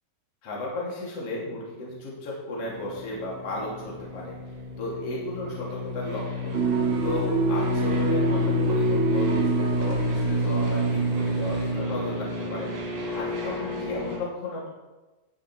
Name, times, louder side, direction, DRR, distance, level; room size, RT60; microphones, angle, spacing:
voice 1, 0.4-4.4 4.8-6.6 7.0-14.7, left 1 dB, 35° left, -5 dB, 3.3 m, -34 dB
sound 1, 2.6-14.2, left 2 dB, 80° right, 5.7 m, -29 dB
sound 2, 6.5-11.7, right 7 dB, 60° right, 3.2 m, -27 dB
18.0 x 6.3 x 4.5 m, 1.1 s
omnidirectional pair, 5.6 m